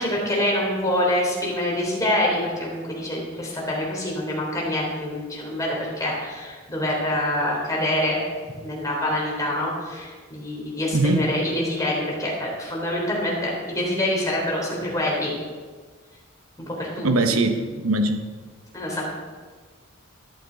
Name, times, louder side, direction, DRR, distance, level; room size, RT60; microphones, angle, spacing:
voice 1, 0.0-8.2 8.6-15.3 16.8-17.1 18.7-19.0, left 1 dB, 15° left, -3 dB, 3.5 m, -25 dB
voice 2, 10.9-11.3 17.0-18.2, right 2 dB, 85° right, 7 dB, 0.9 m, -21 dB
12.0 x 11.0 x 4.0 m, 1.4 s
head